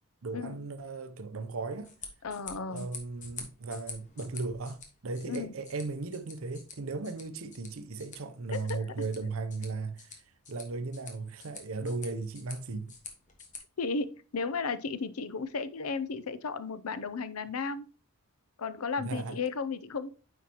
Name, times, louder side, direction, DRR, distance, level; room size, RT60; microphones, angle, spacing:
voice 1, 0.2-1.9 2.7-10.1 10.5-12.9 19.0-19.4, right 3 dB, 70° right, 0.7 m, -36 dB
sound 1, 1.7-13.6, left 5 dB, 35° left, 1.5 m, -48 dB
voice 2, 2.2-2.9 5.3-5.5 8.5-8.8 13.8-17.9 18.6-20.1, left 4 dB, 85° left, 0.6 m, -34 dB
9.3 x 4.6 x 2.9 m
head